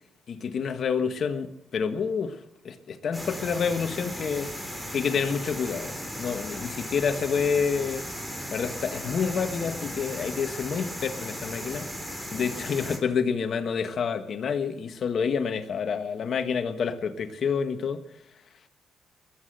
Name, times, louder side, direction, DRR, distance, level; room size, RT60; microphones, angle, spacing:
voice 1, 0.3-2.4 2.6-4.5 4.9-8.0 8.5-11.9 12.3-18.0, left 6 dB, 55° left, 8 dB, 1.5 m, -28 dB
sound 1, 3.1-13.0, equal, 5° right, 3.6 m, -36 dB
20.5 x 8.8 x 7.9 m, 0.85 s
cardioid pair, 90°, 0 cm